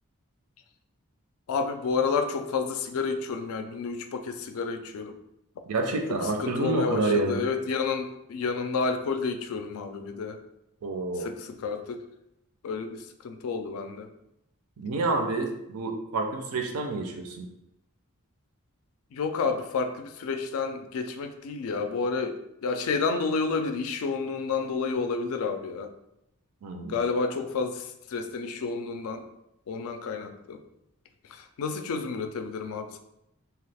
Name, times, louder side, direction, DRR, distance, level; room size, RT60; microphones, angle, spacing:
voice 1, 1.5-5.1 6.4-10.4 11.2-12.0 12.6-14.1 19.1-25.9 26.9-29.2 29.7-30.6 31.3-33.0, left 4 dB, 65° left, 7 dB, 0.4 m, -30 dB
voice 2, 5.7-7.5 10.8-11.3 14.8-17.5 26.6-27.0, right 3 dB, 75° right, 4 dB, 0.5 m, -28 dB
2.9 x 2.3 x 3.3 m, 0.83 s
head